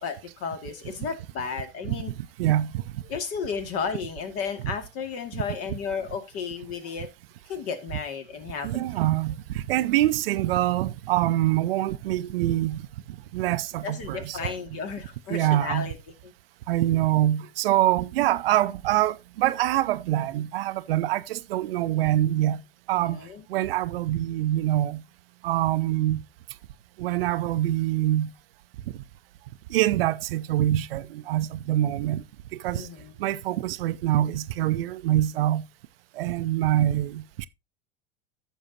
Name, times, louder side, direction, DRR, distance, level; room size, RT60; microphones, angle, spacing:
voice 1, 0.0-2.1 3.1-7.1 7.5-8.7 13.8-16.0 23.0-23.4 32.7-33.1, left 6 dB, 50° left, 2.2 m, -33 dB
voice 2, 2.4-2.7 8.6-14.5 15.3-15.9 16.7-22.6 22.9-23.2 23.5-25.0 25.4-26.2 27.0-28.3 29.7-32.2 32.5-32.9 33.2-35.6 36.2-37.5, right 14 dB, 70° right, 0.6 m, -25 dB
14.5 x 6.4 x 2.8 m
figure-of-eight pair, 80°, 31 cm